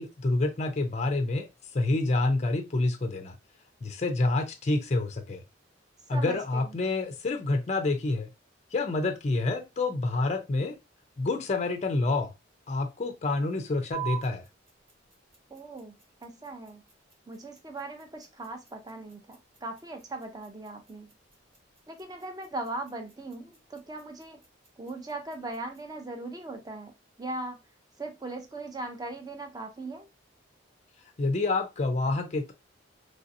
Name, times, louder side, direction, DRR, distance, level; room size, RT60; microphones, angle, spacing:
voice 1, 0.0-1.5 1.7-3.3 3.8-5.4 6.1-8.3 8.7-10.8 11.2-12.3 12.7-14.4 31.2-32.5, left 2 dB, 35° left, 0.4 m, -28 dB
voice 2, 6.1-6.8 15.5-16.0 16.2-16.8 17.3-21.1 21.9-24.4 24.8-26.9 27.2-27.6 28.0-30.1, right 2 dB, 20° right, 0.5 m, -39 dB
sound 1, 13.9-25.9, right 12 dB, 45° right, 1.2 m, -46 dB
3.2 x 2.6 x 2.6 m
head